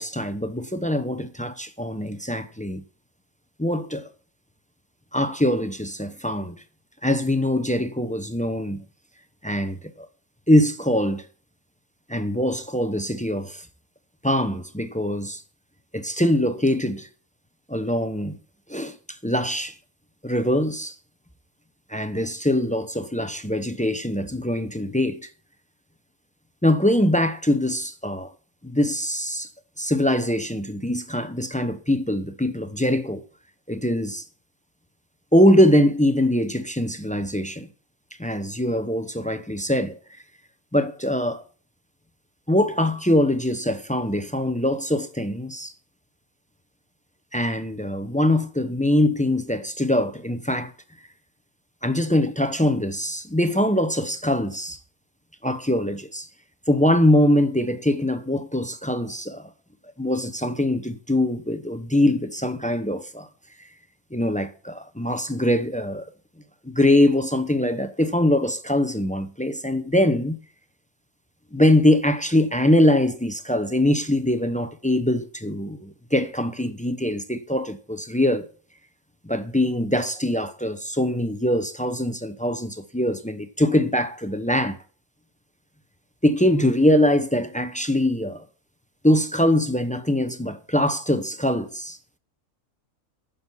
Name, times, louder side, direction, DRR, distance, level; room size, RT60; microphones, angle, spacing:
voice 1, 0.0-2.8 3.6-4.1 5.1-6.5 7.0-8.8 9.4-10.1 10.5-11.2 12.1-13.6 14.2-15.4 15.9-17.1 17.7-18.4 18.7-18.9 19.2-19.7 20.2-20.9 21.9-25.3 26.6-28.3 28.6-29.5 29.8-33.2 33.7-34.2 35.3-37.7 38.2-40.0 40.7-41.4 42.5-45.7 47.3-50.7 51.8-54.8 55.4-56.3 56.7-59.4 60.0-63.3 64.1-66.0 66.6-70.4 71.5-78.5 79.2-84.8 86.2-88.4 89.0-92.0, left 1 dB, 10° left, 0.4 m, -23 dB
9.7 x 6.9 x 7.2 m
omnidirectional pair, 1.5 m